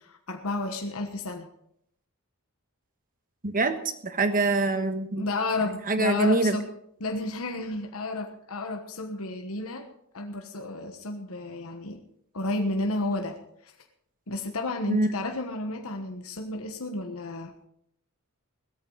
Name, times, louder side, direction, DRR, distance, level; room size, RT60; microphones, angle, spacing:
voice 1, 0.0-1.5 5.2-6.7 7.0-9.9 10.1-12.0 12.3-13.4 14.3-17.7, left 2 dB, 70° left, 4 dB, 1.3 m, -32 dB
voice 2, 3.4-3.7 4.0-5.2 5.9-6.6 14.9-15.1, right 2 dB, 40° right, 8 dB, 1.4 m, -24 dB
17.5 x 13.5 x 4.0 m, 0.73 s
head